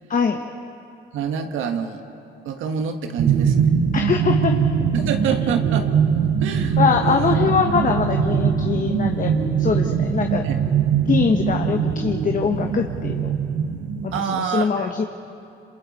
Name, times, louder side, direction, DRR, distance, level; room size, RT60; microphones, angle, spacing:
voice 1, 0.1-0.4 3.9-4.6 6.8-9.3 9.6-10.5 11.1-13.3 14.0-15.0, left 6 dB, 40° left, 4 dB, 1.2 m, -22 dB
voice 2, 1.1-2.0 2.4-3.7 4.3-4.4 4.9-5.9 6.4-7.4 10.4-10.6 14.1-14.9, right 7 dB, 85° right, 6 dB, 1.6 m, -27 dB
sound 1, 3.2-14.2, right 7 dB, 65° right, 1.2 m, -21 dB
27.5 x 27.0 x 4.3 m, 2.7 s
cardioid pair, 90°, 20 cm